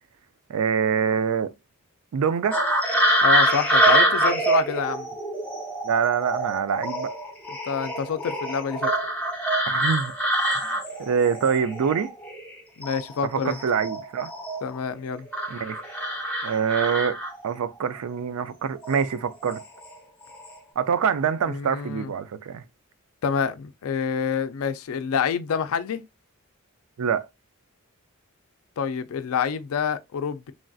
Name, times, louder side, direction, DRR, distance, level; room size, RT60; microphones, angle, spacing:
voice 1, 0.5-1.5 2.1-2.6 5.8-7.1 9.7-10.3 10.7-12.1 13.2-14.3 15.5-15.8 16.4-17.2 17.4-19.6 20.8-22.6 27.0-27.3, right 7 dB, 85° right, 0.4 m, -25 dB
sound 1, 2.5-12.5 12.8-14.8 15.3-17.6 18.8-19.0 19.5-19.9 20.2-20.5, right 1 dB, 5° left, 0.7 m, -25 dB
voice 2, 3.2-5.1 7.7-8.9 12.8-13.6 14.6-15.3 21.5-22.1 23.2-26.0 28.8-30.5, left 6 dB, 75° left, 0.4 m, -27 dB
3.2 x 2.6 x 2.3 m
head